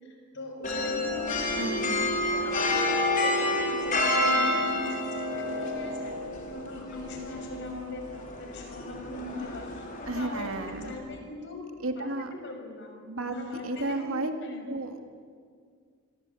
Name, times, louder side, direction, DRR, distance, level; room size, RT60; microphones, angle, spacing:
voice 1, 0.0-2.0 2.4-2.8 3.2-6.1 6.5-11.6 12.0-12.1 12.4-12.9 13.3-14.7, left 2 dB, 60° left, 3 dB, 6.1 m, -40 dB
sound 1, 0.6-10.9, left 1 dB, 40° left, 4.6 m, -29 dB
voice 2, 1.5-2.1 10.0-11.0 11.8-12.3 13.0-14.3 14.7-15.0, right 2 dB, 85° right, 5 dB, 2.5 m, -33 dB
28.0 x 21.5 x 9.3 m, 2.1 s
head